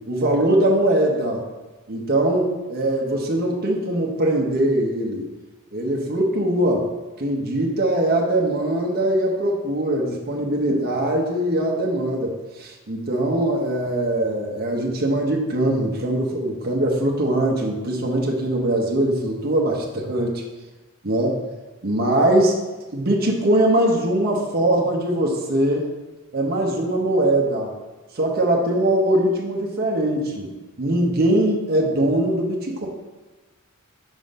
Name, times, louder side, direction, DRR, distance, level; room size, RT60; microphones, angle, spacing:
voice 1, 0.1-1.4 1.9-5.2 5.7-6.9 7.2-20.4 21.0-21.4 21.8-22.6 22.9-25.9 26.3-27.7 28.1-30.5 30.8-32.9, right 1 dB, 45° right, -1 dB, 0.8 m, -21 dB
5.3 x 3.8 x 5.2 m, 1.2 s
head